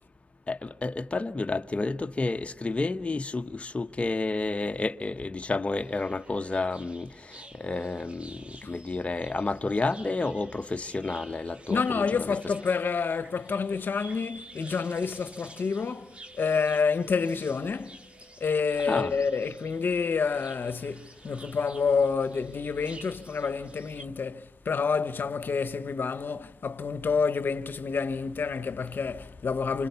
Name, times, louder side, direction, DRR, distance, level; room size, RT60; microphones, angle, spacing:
voice 1, 0.5-12.4 18.8-19.1, left 3 dB, 35° left, 1.0 m, -30 dB
sound 1, 5.8-24.0, right 2 dB, 35° right, 1.6 m, -51 dB
voice 2, 11.7-18.0 18.4-29.9, left 5 dB, 75° left, 1.0 m, -28 dB
27.5 x 26.5 x 6.9 m
cardioid pair, 65°, 4 cm